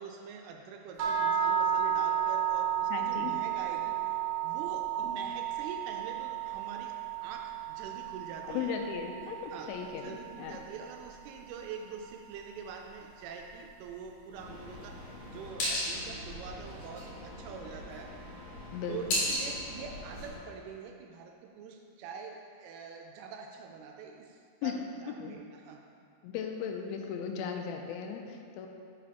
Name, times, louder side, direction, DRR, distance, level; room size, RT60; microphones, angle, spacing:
voice 1, 0.0-4.0 4.2-6.9 7.2-8.8 9.5-18.1 18.9-25.9, right 5 dB, 85° right, 3 dB, 2.3 m, -45 dB
sound 1, 1.0-11.1, right 9 dB, 65° right, 2.0 m, -33 dB
voice 2, 2.9-3.3 8.5-10.6 18.7-19.2 24.6-24.7 25.2-25.3 26.2-28.7, left 7 dB, 85° left, 3 dB, 2.2 m, -37 dB
sound 2, 14.3-20.4, left 1 dB, 55° left, 2.8 m, -37 dB
9.4 x 6.0 x 2.8 m, 2.4 s
omnidirectional pair, 4.8 m